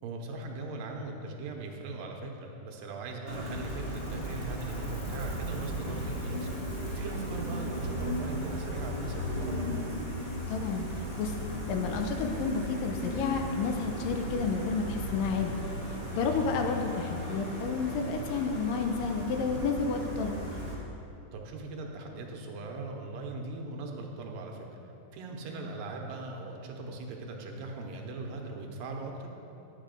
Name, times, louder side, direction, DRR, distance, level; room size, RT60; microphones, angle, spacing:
voice 1, 0.0-6.5 6.9-9.9 16.3-16.5 21.3-24.8 25.1-29.3, right 3 dB, 80° right, 2 dB, 2.5 m, -40 dB
Gull seagull, 3.3-20.7, equal, 45° left, 0.7 m, -36 dB
voice 2, 10.5-10.9 11.2-11.3 11.7-15.5 16.1-20.5, left 5 dB, 75° left, 4 dB, 2.3 m, -31 dB
12.0 x 8.2 x 5.2 m, 2.9 s
omnidirectional pair, 4.2 m